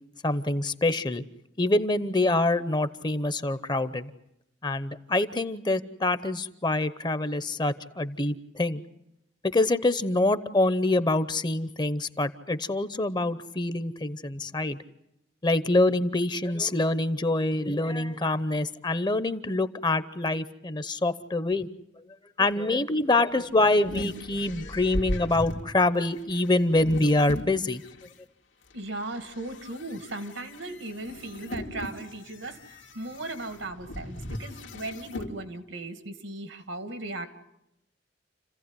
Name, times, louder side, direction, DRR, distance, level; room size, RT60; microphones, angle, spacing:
voice 1, 0.2-1.2 1.6-4.1 4.6-8.8 9.4-14.8 15.4-21.7 22.4-27.8, left 2 dB, 25° left, 14 dB, 0.8 m, -25 dB
sound 1, 23.1-28.1 28.7-35.3, left 1 dB, 85° left, 2.3 m, -38 dB
voice 2, 28.7-37.3, right 2 dB, 85° right, 9 dB, 2.1 m, -37 dB
29.5 x 15.5 x 9.8 m, 0.85 s
head